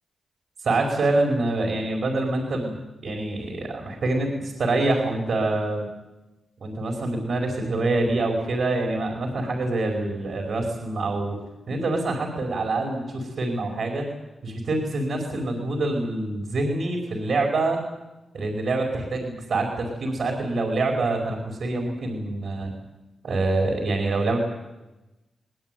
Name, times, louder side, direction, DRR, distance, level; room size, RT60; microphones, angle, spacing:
voice 1, 0.6-5.9 6.6-11.4 11.7-14.0 14.4-17.8 18.3-22.7 23.2-24.4, right 2 dB, 70° right, 1 dB, 5.1 m, -26 dB
21.0 x 19.0 x 9.4 m, 1.0 s
supercardioid pair, 45°, 0 cm